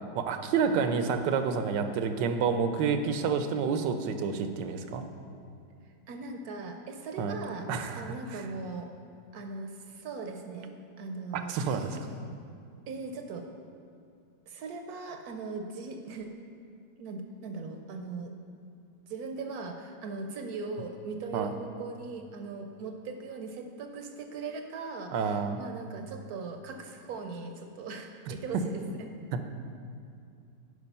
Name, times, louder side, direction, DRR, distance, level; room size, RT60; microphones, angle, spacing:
voice 1, 0.1-5.0 7.2-7.4 7.7-8.4 11.3-12.0 21.3-21.5 25.1-25.6 28.3-28.4, right 6 dB, 85° right, 8 dB, 1.3 m, -29 dB
voice 2, 0.7-1.1 5.8-7.7 7.9-8.9 9.3-12.0 12.9-13.5 14.5-16.3 17.0-18.3 19.1-29.1, right 4 dB, 70° right, 5 dB, 1.0 m, -39 dB
9.9 x 5.0 x 5.4 m, 2.4 s
omnidirectional pair, 1.9 m